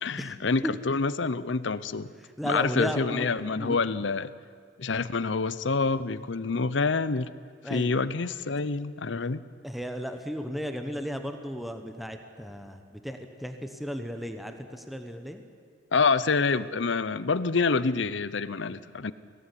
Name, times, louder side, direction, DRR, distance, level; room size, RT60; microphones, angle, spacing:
voice 1, 0.0-2.1 2.4-4.3 4.8-7.3 7.7-9.4 15.9-19.1, left 4 dB, 80° left, 17 dB, 0.7 m, -27 dB
voice 2, 2.2-3.8 7.6-7.9 9.6-15.4, equal, ahead, 6 dB, 1.2 m, -35 dB
22.0 x 18.0 x 9.9 m, 2.1 s
head